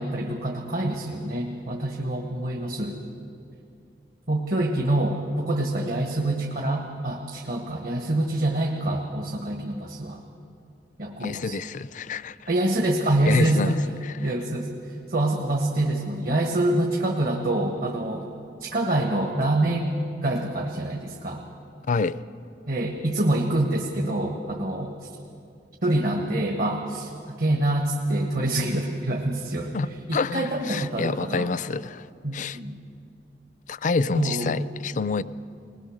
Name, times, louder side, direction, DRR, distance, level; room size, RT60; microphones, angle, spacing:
voice 1, 0.0-2.9 4.3-10.2 11.0-11.6 12.5-13.8 14.2-14.8 15.1-18.3 18.6-19.9 20.2-21.4 22.7-25.1 25.8-27.1 27.4-29.7 30.1-31.5 32.2-32.8 34.1-34.6, right 1 dB, 55° right, 1 dB, 1.4 m, -26 dB
voice 2, 11.2-12.5 13.3-14.3 21.8-22.2 29.7-32.1 32.3-32.6 33.7-35.2, left 4 dB, 45° left, 16 dB, 0.4 m, -28 dB
21.0 x 19.5 x 6.4 m, 2.5 s
head